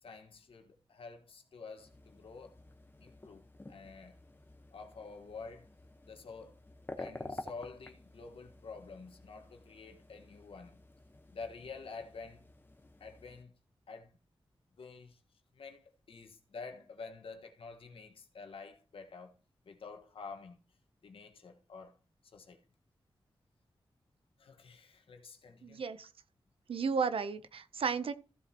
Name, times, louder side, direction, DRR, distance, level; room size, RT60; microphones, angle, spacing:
voice 1, 0.0-2.6 3.0-4.2 4.7-5.7 6.1-6.6 7.0-10.8 11.3-12.4 13.0-13.5 13.9-14.2 14.8-15.2 15.5-19.4 19.6-20.6 21.0-22.0 22.3-22.6 24.4-25.8, left 4 dB, 85° left, 1.5 m, -49 dB
sound 1, 1.8-13.4, left 2 dB, 25° left, 1.1 m, -51 dB
voice 2, 25.6-26.1 26.7-28.1, right 5 dB, 85° right, 0.8 m, -33 dB
15.0 x 7.5 x 3.0 m
wide cardioid pair, 90°, 9 cm